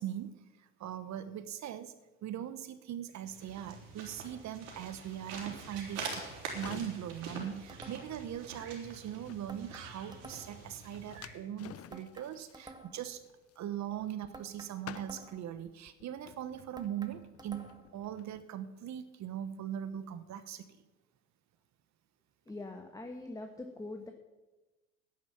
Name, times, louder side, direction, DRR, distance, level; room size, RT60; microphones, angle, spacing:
voice 1, 0.0-1.9 2.2-6.2 6.5-13.2 13.6-20.7, right 10 dB, 45° right, 12 dB, 1.1 m, -40 dB
sound 1, 3.2-11.4, right 4 dB, 75° right, 3.7 m, -45 dB
sound 2, 6.5-14.5 14.8-18.4, left 11 dB, 40° left, 0.8 m, -53 dB
sound 3, 7.7-8.3 9.5-10.7 11.9-13.1 14.3-15.6 16.8-18.0, right 2 dB, 10° right, 1.6 m, -52 dB
voice 2, 22.5-24.1, left 2 dB, 10° left, 4 dB, 1.5 m, -43 dB
11.0 x 10.5 x 7.0 m, 1.1 s
hypercardioid pair, 75°, 38 cm